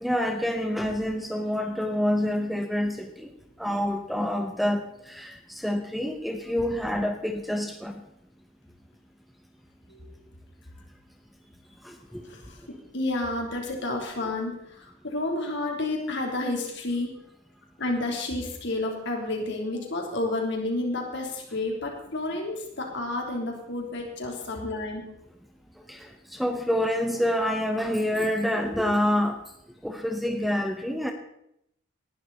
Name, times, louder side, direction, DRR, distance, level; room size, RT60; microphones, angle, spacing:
voice 1, 0.0-3.3 3.6-7.9 11.9-12.2 25.9-26.0 26.3-29.4 29.8-31.1, left 1 dB, ahead, 6 dB, 0.9 m, -27 dB
voice 2, 12.9-17.1 17.8-25.0, left 2 dB, 55° left, 1 dB, 3.3 m, -30 dB
19.0 x 11.5 x 4.1 m, 0.77 s
head